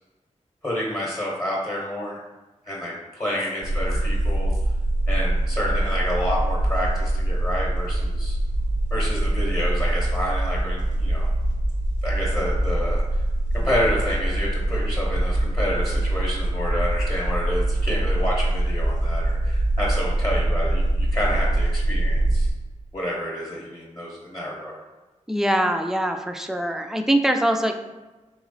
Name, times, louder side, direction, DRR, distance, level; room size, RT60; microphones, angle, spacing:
voice 1, 0.6-2.2 2.6-4.5 5.1-8.4 8.9-11.3 12.0-13.2 13.5-22.5 22.9-24.8, equal, 25° left, -4 dB, 0.9 m, -29 dB
sound 1, 3.6-22.5, right 1 dB, 75° right, 0.6 m, -23 dB
voice 2, 25.3-27.7, right 1 dB, 5° right, 5 dB, 0.3 m, -23 dB
3.3 x 3.1 x 3.8 m, 1.2 s
wide cardioid pair, 105°, 13 cm